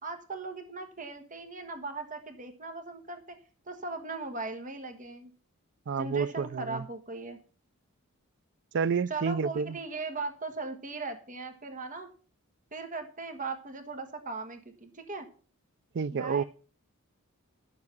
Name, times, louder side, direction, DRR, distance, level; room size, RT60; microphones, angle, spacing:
voice 1, 0.0-3.4 3.6-5.3 6.0-7.4 9.1-12.1 12.7-15.3 16.1-16.4, right 3 dB, 35° right, 1.5 m, -38 dB
voice 2, 5.9-6.8 8.7-9.8 15.9-16.4, right 6 dB, 50° right, 0.4 m, -29 dB
10.5 x 7.2 x 6.0 m
head